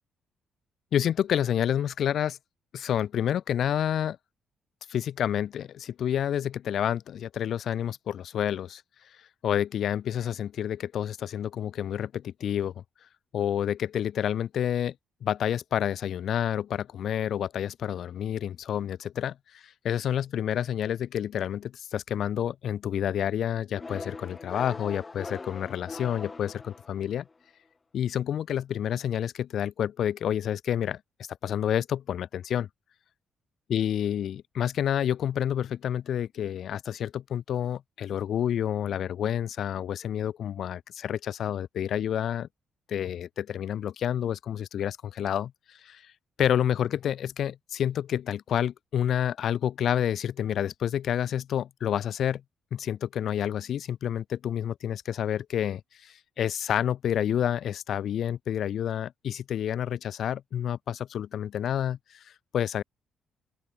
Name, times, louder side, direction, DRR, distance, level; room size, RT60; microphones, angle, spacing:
voice 1, 0.9-2.4 2.7-4.2 4.9-8.8 9.4-12.8 13.3-14.9 15.2-27.3 27.9-31.0 31.4-32.7 33.7-42.5 42.9-46.0 46.4-52.4 52.7-62.2 62.5-62.8, left 10 dB, 65° left, 0.7 m, -29 dB
sound 1, 23.8-27.3, left 3 dB, 25° left, 2.3 m, -41 dB
open air
cardioid pair, 90°, 0 cm